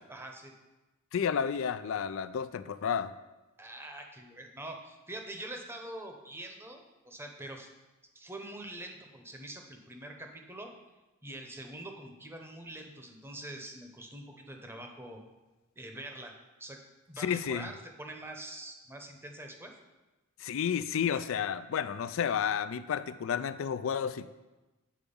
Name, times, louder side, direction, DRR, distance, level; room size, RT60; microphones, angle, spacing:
voice 1, 0.1-0.5 3.6-7.7 8.1-10.7 11.2-15.2 15.8-16.3 16.6-16.8 17.1-19.7, right 1 dB, 10° right, 3 dB, 0.8 m, -44 dB
voice 2, 1.1-3.1 17.2-17.7 20.4-24.3, left 7 dB, 65° left, 14 dB, 0.4 m, -31 dB
8.7 x 4.6 x 5.3 m, 1.1 s
head